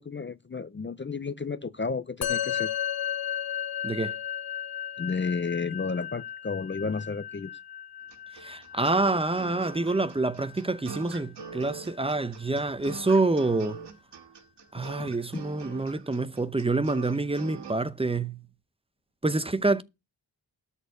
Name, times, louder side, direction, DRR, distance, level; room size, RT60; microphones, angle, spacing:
voice 1, 0.0-2.7 5.0-7.5 15.0-15.1, left 4 dB, 25° left, 0.5 m, -32 dB
Musical instrument, 2.2-11.8, left 10 dB, 55° left, 1.1 m, -35 dB
voice 2, 3.8-4.2 8.3-13.8 14.7-18.4 19.2-19.8, right 2 dB, 15° right, 0.8 m, -27 dB
sound 1, 8.1-17.7, right 5 dB, 75° right, 1.6 m, -43 dB
12.5 x 4.4 x 8.2 m
wide cardioid pair, 95°, 42 cm